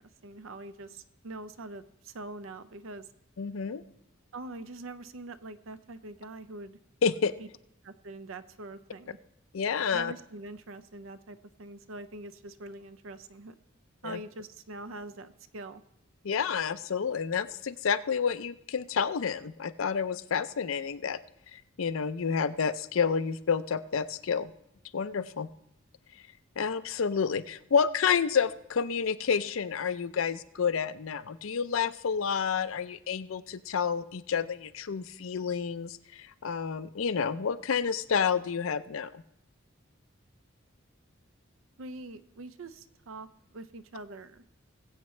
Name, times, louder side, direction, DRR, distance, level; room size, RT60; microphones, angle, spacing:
voice 1, 0.0-3.1 4.3-6.8 7.4-7.5 7.8-9.2 9.9-13.6 14.0-15.8 41.8-44.4, right 2 dB, 80° right, 12 dB, 0.6 m, -44 dB
voice 2, 3.4-3.8 7.0-7.3 9.5-10.1 14.0-14.2 16.2-21.2 21.5-24.5 24.9-25.5 26.6-39.2, left 6 dB, 80° left, 13 dB, 0.5 m, -29 dB
21.0 x 8.0 x 3.2 m, 0.80 s
head